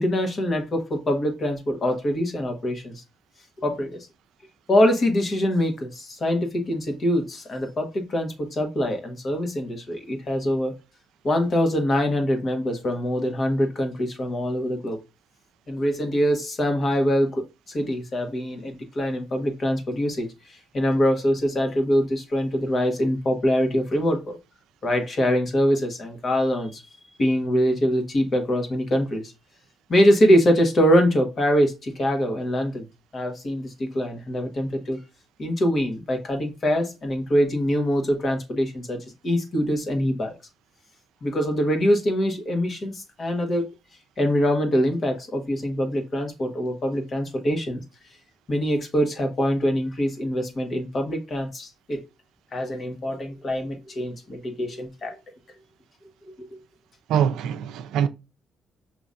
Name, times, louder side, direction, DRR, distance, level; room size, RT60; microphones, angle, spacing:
voice 1, 0.0-3.0 3.6-4.1 4.7-10.7 11.2-15.0 15.7-17.4 17.7-20.3 20.7-24.4 24.8-26.8 27.2-29.3 29.9-32.8 33.1-35.0 35.4-40.3 41.2-43.7 44.2-47.8 48.5-52.0 52.5-55.1, equal, 45° left, 1.3 m, -24 dB
voice 2, 57.1-58.1, right 9 dB, 85° right, 0.4 m, -23 dB
5.4 x 2.9 x 2.5 m
cardioid pair, 90°, 0 cm